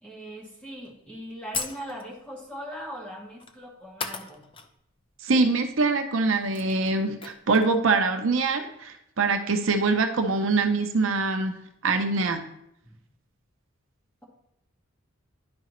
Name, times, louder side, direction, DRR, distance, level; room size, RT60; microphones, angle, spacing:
voice 1, 0.0-4.4, equal, 5° left, -4 dB, 1.6 m, -40 dB
sound 1, 0.8-0.9 1.5-2.2 3.4-3.6 4.0-4.7 5.0-5.1 6.1-6.2 6.3-7.8, left 5 dB, 25° left, 0.4 m, -36 dB
voice 2, 5.2-11.5 11.8-12.4, right 3 dB, 65° right, 6 dB, 0.6 m, -24 dB
10.5 x 4.8 x 3.0 m, 0.78 s
head